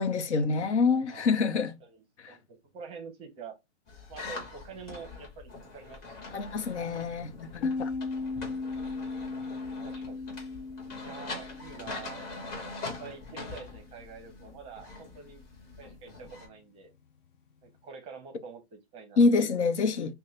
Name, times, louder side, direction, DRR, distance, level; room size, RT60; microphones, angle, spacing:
voice 1, 0.0-1.7 2.2-2.4 6.3-7.9 19.2-20.1, left 4 dB, 70° left, 0.9 m, -26 dB
voice 2, 0.9-1.3 1.8-3.6 4.1-6.3 8.2-8.5 9.7-10.2 11.0-12.2 13.0-15.4 15.8-16.9 17.6-19.2, right 5 dB, 15° right, 0.7 m, -47 dB
sound 1, 3.9-16.5, left 3 dB, 25° left, 1.5 m, -43 dB
sound 2, 7.6-13.0, left 4 dB, 45° left, 0.5 m, -36 dB
5.4 x 2.2 x 3.2 m
hypercardioid pair, 145°, 35 cm